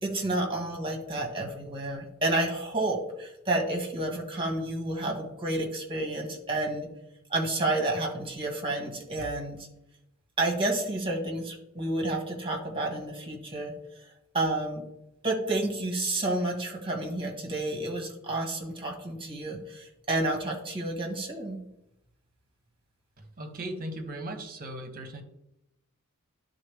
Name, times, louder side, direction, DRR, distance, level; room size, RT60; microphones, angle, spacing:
voice 1, 0.0-6.9 7.3-9.7 10.4-13.7 14.3-14.8 15.2-21.6, right 2 dB, 25° right, 0 dB, 1.8 m, -30 dB
voice 2, 23.4-25.2, right 1 dB, 40° right, 5 dB, 1.1 m, -37 dB
11.5 x 4.0 x 3.5 m, 0.84 s
head